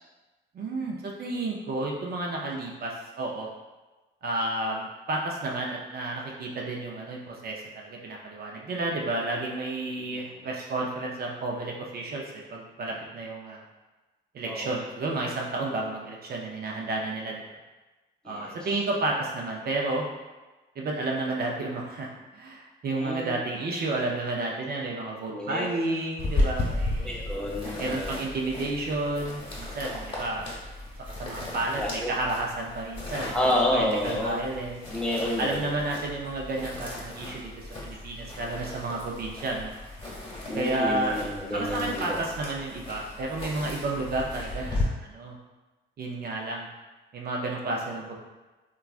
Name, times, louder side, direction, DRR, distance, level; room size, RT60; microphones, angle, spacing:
voice 1, 0.5-3.5 4.2-13.6 14.3-17.5 18.2-20.0 20.8-27.1 27.8-30.5 31.2-34.8 35.4-39.7 40.5-41.2 41.5-45.4 46.0-46.7 47.1-48.1, right 2 dB, 50° right, -1 dB, 0.5 m, -31 dB
voice 2, 18.2-18.6 22.9-23.4 25.3-25.7 27.0-28.2 31.8-32.1 33.3-34.4 34.9-35.8 40.5-42.2, left 1 dB, 5° left, -4 dB, 0.6 m, -29 dB
sound 1, 26.2-44.8, left 2 dB, 25° left, 1.1 m, -35 dB
3.2 x 2.3 x 2.4 m, 1.2 s
cardioid pair, 90°, 20 cm